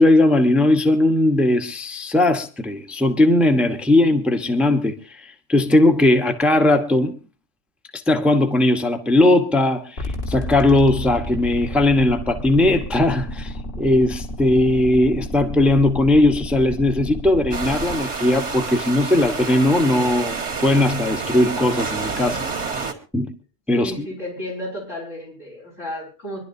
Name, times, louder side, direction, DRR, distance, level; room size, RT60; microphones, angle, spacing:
voice 1, 0.0-7.1 7.9-20.3 20.6-22.4 22.7-22.9 23.1-23.3 23.7-24.1, left 1 dB, ahead, 0.9 m, -18 dB
sound 1, 10.0-18.0, equal, 55° left, 2.1 m, -31 dB
sound 2, 17.5-22.9, right 4 dB, 80° right, 2.3 m, -28 dB
voice 2, 23.7-26.4, equal, 85° left, 7.0 m, -32 dB
25.0 x 11.5 x 2.7 m
omnidirectional pair, 1.2 m